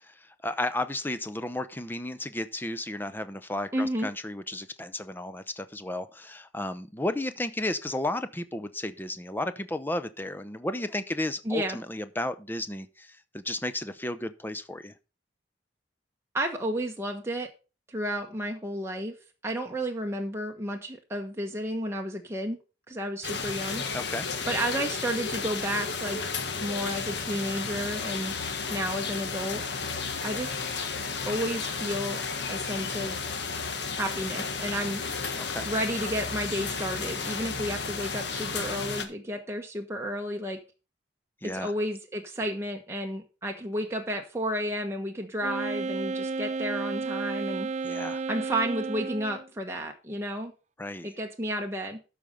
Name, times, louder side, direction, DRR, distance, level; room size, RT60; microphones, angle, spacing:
voice 1, 0.4-13.1 13.3-14.9 23.9-24.3 35.5-35.7 41.4-41.7 47.8-48.2 50.8-51.1, left 1 dB, 10° left, 0.7 m, -33 dB
voice 2, 3.7-4.1 11.4-11.8 16.3-17.5 17.9-19.1 19.4-22.6 22.9-23.8 24.5-26.2 26.6-28.3 28.7-29.6 30.2-30.5 31.2-32.2 32.5-33.2 34.0-35.0 35.6-40.6 41.4-47.7 48.3-50.5 51.0-52.0, equal, 15° right, 1.2 m, -32 dB
sound 1, 23.2-39.0, left 4 dB, 60° left, 1.6 m, -33 dB
Wind instrument woodwind instrument, 45.4-49.5, right 4 dB, 40° right, 0.5 m, -32 dB
13.0 x 5.1 x 5.4 m
head